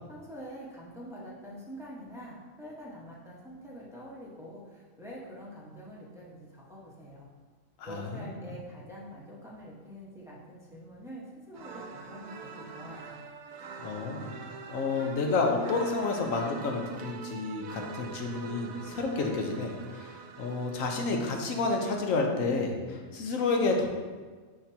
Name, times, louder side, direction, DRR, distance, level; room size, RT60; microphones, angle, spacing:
voice 1, 0.1-7.3 7.8-13.2, equal, ahead, -6 dB, 1.1 m, -45 dB
voice 2, 7.8-8.5 13.8-14.3 14.7-23.9, left 3 dB, 70° left, 2 dB, 1.2 m, -30 dB
sound 1, 11.5-22.0, right 5 dB, 80° right, 1.0 m, -45 dB
10.0 x 3.8 x 2.8 m, 1.4 s
omnidirectional pair, 1.5 m